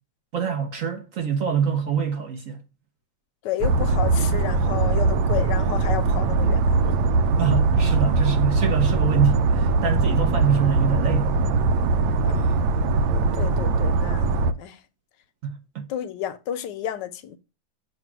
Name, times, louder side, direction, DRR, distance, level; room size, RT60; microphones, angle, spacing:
voice 1, 0.3-2.6 7.4-11.3 15.4-15.8, right 7 dB, 55° right, 1.0 m, -25 dB
voice 2, 3.4-6.9 12.3-12.6 13.3-14.8 15.9-17.4, left 11 dB, 75° left, 1.1 m, -31 dB
sound 1, 3.6-14.5, right 3 dB, 90° right, 1.3 m, -21 dB
7.4 x 2.8 x 5.8 m
omnidirectional pair, 2.0 m